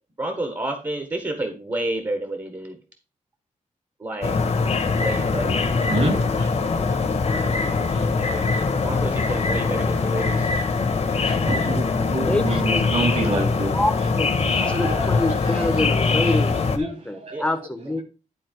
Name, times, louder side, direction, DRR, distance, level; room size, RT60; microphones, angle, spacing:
voice 1, 0.2-2.8 4.0-4.4 4.9-5.6 8.2-8.5 8.8-10.5 15.0-15.3 17.3-17.4 17.9-18.0, right 1 dB, 25° right, 1.6 m, -30 dB
sound 1, 4.2-16.8, left 4 dB, 55° left, 1.5 m, -22 dB
voice 2, 5.9-8.6 10.8-14.1 14.4-15.8 16.2-16.4 16.8-17.5, right 2 dB, 55° right, 3.8 m, -30 dB
voice 3, 12.3-12.9 13.7-14.3 14.7-18.0, left 1 dB, 10° left, 1.2 m, -26 dB
11.5 x 4.4 x 4.6 m
wide cardioid pair, 120°, 13 cm